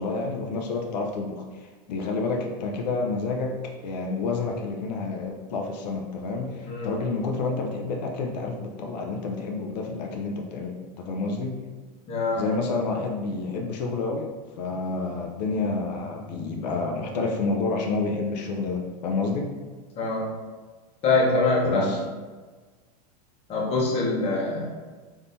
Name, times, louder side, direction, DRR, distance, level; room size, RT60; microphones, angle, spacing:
voice 1, 0.0-3.5 3.8-11.6 12.4-14.3 14.6-19.5 21.6-22.0, left 3 dB, 85° left, 1 dB, 0.5 m, -29 dB
voice 2, 12.1-12.4 20.0-20.3 21.0-21.9 23.5-24.7, left 3 dB, 30° left, -3 dB, 0.9 m, -24 dB
3.6 x 2.7 x 2.6 m, 1.4 s
supercardioid pair, 135°, 21 cm